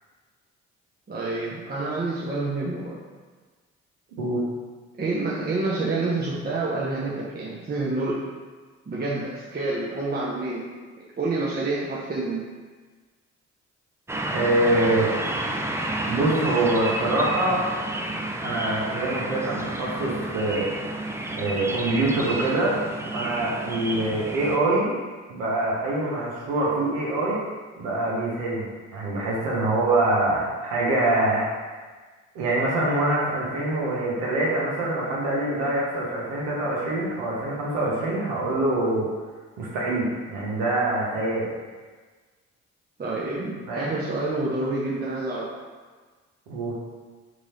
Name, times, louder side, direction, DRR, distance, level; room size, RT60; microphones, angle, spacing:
voice 1, 1.1-3.0 5.0-8.2 8.9-10.6 11.2-12.4 43.0-45.5, right 2 dB, 25° right, -6 dB, 0.8 m, -28 dB
sound 1, 14.1-24.6, right 1 dB, 10° right, 0.4 m, -30 dB
voice 2, 14.3-15.1 16.1-17.6 18.4-20.7 21.3-22.8 23.1-24.9 25.3-27.4 27.8-31.4 32.3-39.1 39.6-41.5 43.7-44.0 46.5-46.7, right 2 dB, 85° right, -5 dB, 0.8 m, -24 dB
3.1 x 2.5 x 4.0 m, 1.4 s
hypercardioid pair, 45°, 36 cm